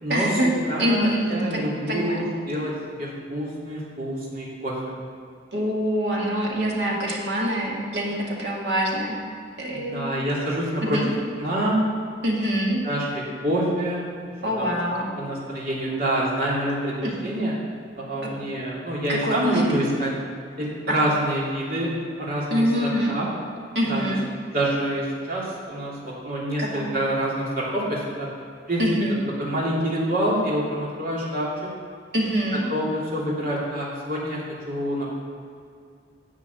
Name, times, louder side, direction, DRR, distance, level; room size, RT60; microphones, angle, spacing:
voice 1, 0.1-0.5 0.8-1.6 1.9-2.2 5.5-9.2 9.6-10.1 10.8-11.1 12.2-12.8 14.4-15.1 17.0-17.2 19.1-19.6 20.9-21.0 22.5-23.2 23.7-24.2 26.6-26.9 28.8-29.2 32.1-32.7, equal, 70° right, -2 dB, 2.2 m, -25 dB
voice 2, 0.7-2.7 3.0-4.8 9.7-11.0 11.4-11.8 12.8-14.0 14.6-14.7 15.2-16.9 17.2-17.5 18.0-20.1 20.6-21.9 22.2-23.3 23.9-24.0 24.5-28.3 28.7-28.8 29.4-31.5 32.7-35.1, right 1 dB, 50° right, -6 dB, 2.9 m, -26 dB
11.0 x 5.0 x 8.2 m, 2.3 s
head